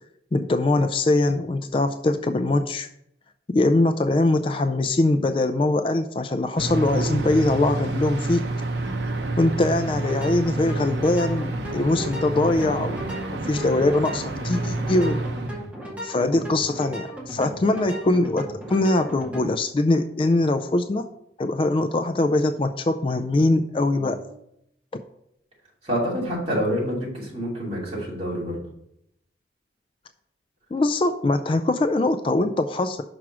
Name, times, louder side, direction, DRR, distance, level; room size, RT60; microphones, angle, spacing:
voice 1, 0.3-2.9 3.5-8.5 9.4-13.0 13.4-15.2 16.0-21.1 21.4-24.2 30.7-33.0, left 2 dB, 30° left, 9 dB, 0.3 m, -22 dB
sound 1, 6.6-15.7, right 2 dB, 80° right, 0.7 m, -29 dB
sound 2, 9.9-19.5, equal, 10° right, 2.1 m, -36 dB
voice 2, 25.8-28.6, equal, 35° right, -5 dB, 2.9 m, -27 dB
6.0 x 4.7 x 6.0 m, 0.77 s
head